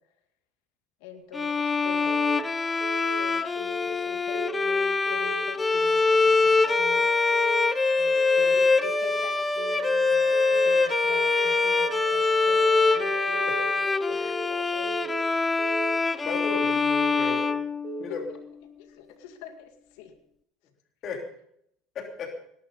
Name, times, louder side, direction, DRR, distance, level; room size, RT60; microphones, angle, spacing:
voice 1, 1.0-2.3 3.2-7.1 8.0-15.2 18.1-18.4 18.8-20.1, left 7 dB, 80° left, 5 dB, 2.2 m, -44 dB
Bowed string instrument, 1.3-18.3, left 4 dB, 20° left, 0.7 m, -24 dB
Keyboard (musical) / Alarm, 2.1-2.4 2.8-3.2 3.6-3.9 4.3-4.7 5.1-5.4 5.8-6.2 6.6-6.9 7.3-7.7 8.1-8.4 8.8-9.2 9.6-10.0 10.3-10.7 11.1-11.5 11.8-12.2 12.6-13.0 13.3-13.7 14.1-14.5 14.8-15.2 15.6-16.0 16.3-16.7 17.1-17.5 17.8-18.2, right 5 dB, 45° right, 3.1 m, -38 dB
Wind instrument woodwind instrument, 6.6-14.2, right 11 dB, 75° right, 4.5 m, -38 dB
voice 2, 16.2-17.5 18.0-18.2 21.0-21.2 21.9-22.3, left 4 dB, 45° left, 2 dB, 3.1 m, -34 dB
18.5 x 11.0 x 5.3 m, 0.72 s
supercardioid pair, 105°, 0 cm